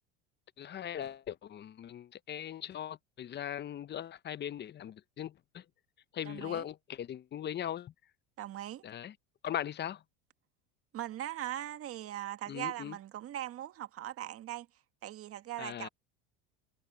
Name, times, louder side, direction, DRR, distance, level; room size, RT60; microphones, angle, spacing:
voice 1, 0.6-5.6 6.1-7.9 8.8-9.1 9.4-10.0 12.5-12.9 15.6-15.9, left 10 dB, 30° left, 0.8 m, -39 dB
voice 2, 6.2-6.7 8.4-8.8 10.9-14.7 15.0-15.9, right 13 dB, 45° right, 1.8 m, -40 dB
supercardioid pair, 100°, 33 cm